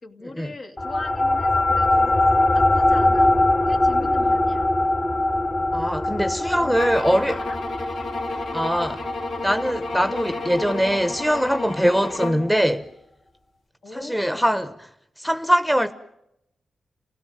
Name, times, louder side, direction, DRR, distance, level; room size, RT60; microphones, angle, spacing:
voice 1, 0.0-2.3 2.5-3.4 3.7-4.7 6.5-7.6 13.8-14.5, left 2 dB, 65° left, 2.7 m, -39 dB
sound 1, 0.8-11.6, left 2 dB, 35° left, 1.9 m, -22 dB
voice 2, 5.7-7.4 8.5-9.1 9.4-12.9 13.9-14.9 15.2-15.9, equal, 5° left, 1.0 m, -22 dB
sound 2, 6.7-12.5, left 2 dB, 85° left, 4.0 m, -32 dB
29.0 x 17.0 x 7.4 m
cardioid pair, 80°, 0 cm